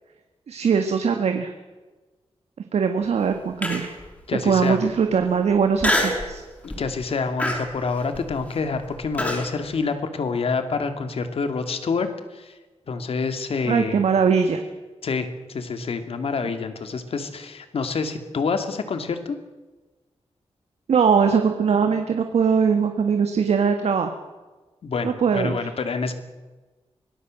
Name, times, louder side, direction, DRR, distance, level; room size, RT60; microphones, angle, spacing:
voice 1, 0.5-1.5 2.7-3.9 4.4-6.4 13.6-14.6 20.9-24.1 25.0-25.7, right 6 dB, 80° right, 6 dB, 1.8 m, -21 dB
Human voice, 3.6-4.0 4.6-4.7 5.8-6.3 6.7-7.0 7.4-9.5, left 1 dB, 15° left, 5.8 m, -25 dB
voice 2, 4.3-4.8 6.8-12.1 12.3-12.5 12.9-14.0 15.0-19.4 24.8-26.1, left 4 dB, 65° left, 8 dB, 2.4 m, -27 dB
24.5 x 19.0 x 7.6 m, 1.2 s
wide cardioid pair, 160°, 11 cm